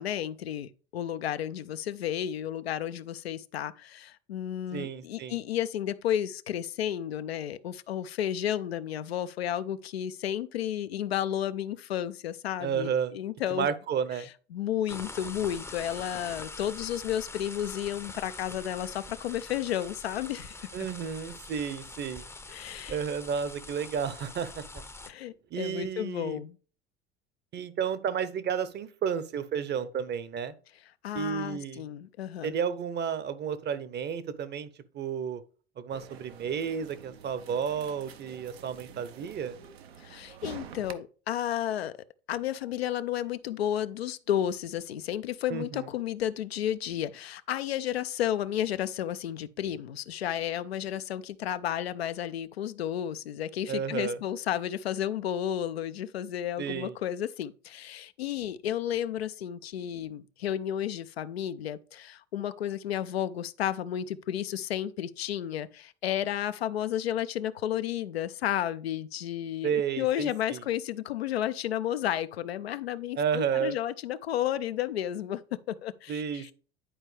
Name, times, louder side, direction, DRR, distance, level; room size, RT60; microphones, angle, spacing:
voice 1, 0.0-13.7 14.2-20.5 22.5-23.0 25.1-26.6 31.0-32.5 40.0-41.9 42.3-75.4 75.7-76.5, left 11 dB, 85° left, 0.5 m, -32 dB
voice 2, 4.7-5.4 12.6-13.1 13.5-14.3 20.7-22.2 22.9-24.8 25.5-26.4 27.5-30.5 31.1-31.8 32.4-34.7 34.9-35.4 35.8-39.6 45.5-45.8 53.7-54.2 56.6-56.9 69.6-70.6 73.2-73.8 76.1-76.5, right 7 dB, 35° right, 0.7 m, -32 dB
sound 1, 14.9-25.1, left 3 dB, 10° left, 0.6 m, -44 dB
shopping mall, 35.9-40.9, right 8 dB, 80° right, 0.7 m, -48 dB
10.0 x 4.4 x 3.3 m
figure-of-eight pair, 70°, 31 cm